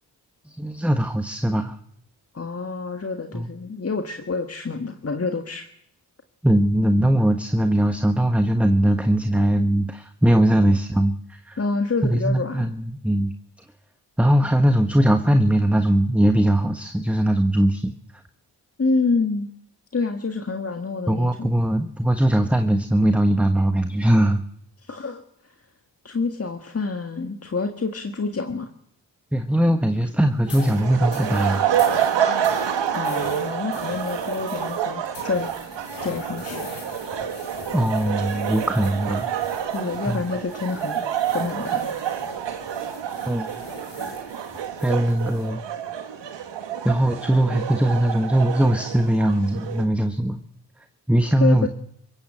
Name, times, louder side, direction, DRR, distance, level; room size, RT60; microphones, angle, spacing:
voice 1, 0.5-1.8 3.3-3.5 6.4-11.6 12.0-13.3 14.2-17.9 21.1-24.4 29.3-31.6 37.7-39.3 40.1-40.2 43.2-43.5 44.8-45.6 46.8-50.4 51.1-51.7, right 1 dB, 5° right, 7 dB, 1.4 m, -20 dB
voice 2, 2.3-5.7 10.7-10.8 11.6-12.7 18.8-19.5 19.9-21.5 24.9-25.2 26.0-28.7 32.9-35.5 36.0-36.6 39.7-41.9 51.4-51.7, left 4 dB, 35° left, 5 dB, 1.7 m, -27 dB
sound 1, 30.4-45.5, left 4 dB, 85° left, 5.8 m, -42 dB
sound 2, 30.5-49.8, right 9 dB, 90° right, 1.8 m, -28 dB
25.5 x 16.5 x 7.5 m, 0.71 s
cardioid pair, 55°, 42 cm